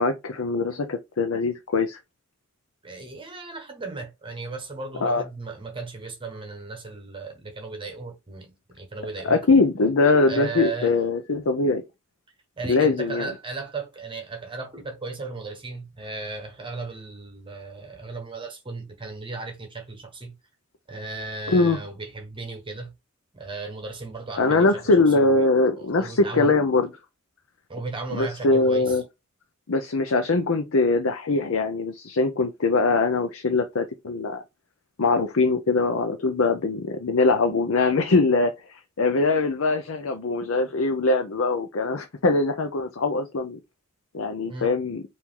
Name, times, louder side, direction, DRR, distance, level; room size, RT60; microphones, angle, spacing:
voice 1, 0.0-2.0 5.0-5.2 9.2-11.8 12.7-13.3 21.5-21.8 24.4-26.9 28.1-29.0 29.7-34.4 35.0-43.6 44.1-45.0, left 3 dB, 75° left, 0.6 m, -22 dB
voice 2, 2.8-9.4 10.3-10.9 12.6-20.3 20.9-22.9 23.3-25.5 25.8-26.5 27.7-29.0 44.5-44.7, right 3 dB, 25° right, 1.1 m, -36 dB
4.6 x 2.7 x 3.7 m
head